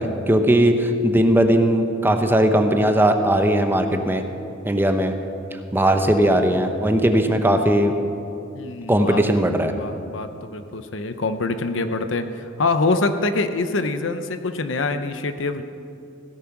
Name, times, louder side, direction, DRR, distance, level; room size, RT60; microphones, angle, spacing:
voice 1, 0.0-4.2 4.7-5.1 5.7-7.9 8.9-9.7, right 1 dB, 10° right, 6 dB, 0.8 m, -18 dB
voice 2, 8.5-9.2 9.6-15.6, left 3 dB, 70° left, 9 dB, 0.8 m, -25 dB
16.5 x 10.0 x 5.9 m, 2.6 s
head